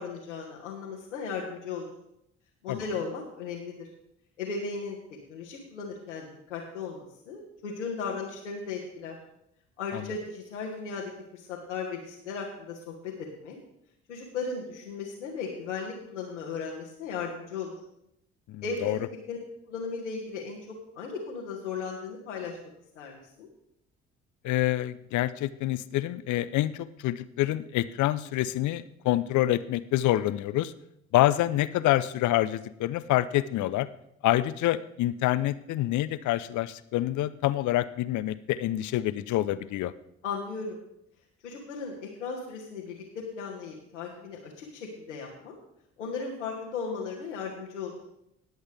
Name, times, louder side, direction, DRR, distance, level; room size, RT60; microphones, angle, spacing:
voice 1, 0.0-1.9 2.6-3.9 4.4-5.0 5.3-9.2 9.8-13.6 14.1-17.8 18.6-19.4 19.7-20.6 20.9-22.6 22.9-23.5 40.2-40.8 41.4-45.5 46.0-48.0, left 5 dB, 85° left, -3 dB, 1.6 m, -36 dB
voice 2, 18.5-19.0 24.4-30.7 31.1-33.9 34.2-39.9, left 14 dB, 55° left, 15 dB, 0.7 m, -27 dB
20.0 x 8.0 x 3.5 m, 0.80 s
hypercardioid pair, 45°, 35 cm